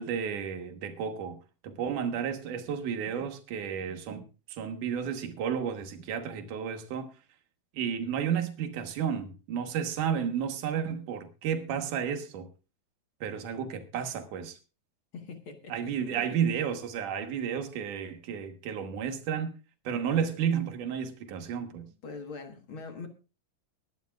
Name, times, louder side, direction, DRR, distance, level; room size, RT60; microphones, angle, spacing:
voice 1, 0.0-7.1 7.7-12.5 13.2-14.6 15.7-19.6 19.8-21.9, right 8 dB, 85° right, 2.9 m, -32 dB
voice 2, 15.1-16.4 22.0-23.1, left 4 dB, 50° left, 1.9 m, -43 dB
22.0 x 11.0 x 2.4 m
omnidirectional pair, 3.5 m